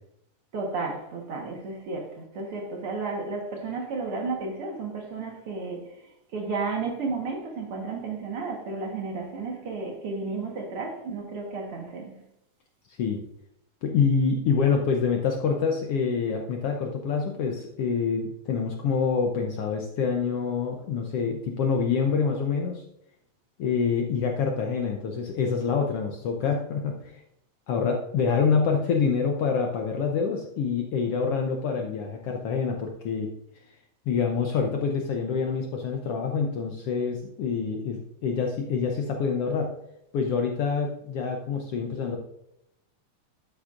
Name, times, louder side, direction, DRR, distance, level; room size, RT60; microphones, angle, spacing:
voice 1, 0.5-12.2, right 4 dB, 55° right, 1 dB, 2.0 m, -33 dB
voice 2, 13.8-22.8 23.6-27.2 27.7-33.3 34.1-39.7 40.1-42.2, left 5 dB, 70° left, 2 dB, 1.5 m, -26 dB
12.0 x 8.1 x 2.5 m, 0.79 s
omnidirectional pair, 3.3 m